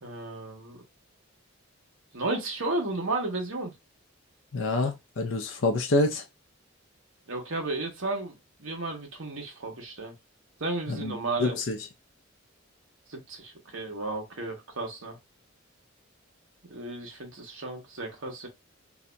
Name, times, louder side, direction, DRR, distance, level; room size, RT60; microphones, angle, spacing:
voice 1, 0.0-0.8 2.1-3.7 7.3-10.1 10.6-11.6 13.1-15.2 16.7-18.5, right 2 dB, 65° right, 1.1 m, -33 dB
voice 2, 4.5-6.2 10.9-11.8, left 2 dB, 65° left, 0.6 m, -27 dB
2.7 x 2.3 x 3.9 m
head